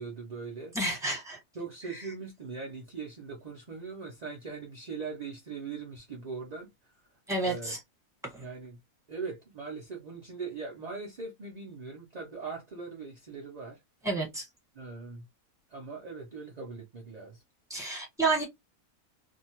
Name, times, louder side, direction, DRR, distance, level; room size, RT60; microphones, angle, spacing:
voice 1, 0.0-0.7 1.5-6.9 7.4-7.7 8.4-8.8 9.1-13.8 14.7-15.3 15.7-17.4, right 4 dB, 45° right, 0.5 m, -40 dB
voice 2, 0.7-1.4 7.3-7.8 8.3-8.4 14.0-14.5 17.7-18.5, right 2 dB, ahead, 1.2 m, -30 dB
2.6 x 2.2 x 2.8 m
omnidirectional pair, 1.5 m